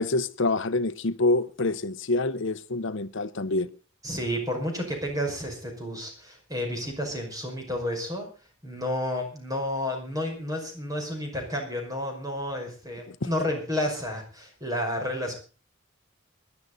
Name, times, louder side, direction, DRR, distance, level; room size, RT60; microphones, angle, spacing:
voice 1, 0.0-3.7 13.1-13.2, left 2 dB, 65° left, 0.8 m, -26 dB
voice 2, 4.0-8.3 8.6-15.3, left 1 dB, 15° right, 5.7 m, -31 dB
21.0 x 11.5 x 4.1 m
head